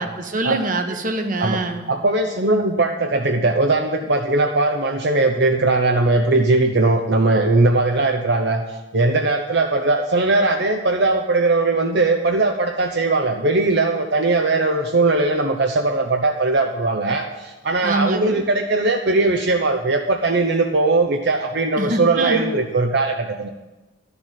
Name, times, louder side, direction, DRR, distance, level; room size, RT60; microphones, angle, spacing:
voice 1, 0.0-1.9 17.8-18.4 21.8-22.5, right 2 dB, 45° right, 6 dB, 1.2 m, -24 dB
voice 2, 1.9-8.6 8.9-23.5, right 2 dB, 65° right, 4 dB, 0.8 m, -19 dB
11.5 x 6.9 x 9.2 m, 1.1 s
head